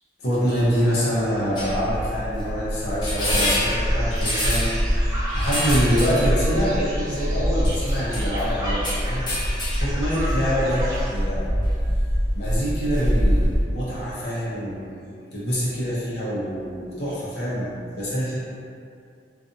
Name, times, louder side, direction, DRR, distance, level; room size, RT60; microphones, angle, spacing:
voice 1, 0.2-9.2 9.5-11.4 12.3-14.9 15.3-18.4, equal, 65° left, -9 dB, 0.7 m, -25 dB
Metal-fence sticks, 1.6-13.6, equal, 25° left, 0.5 m, -24 dB
sound 1, 3.2-11.1, right 1 dB, 20° right, 0.5 m, -35 dB
2.5 x 2.4 x 2.5 m, 2.4 s
head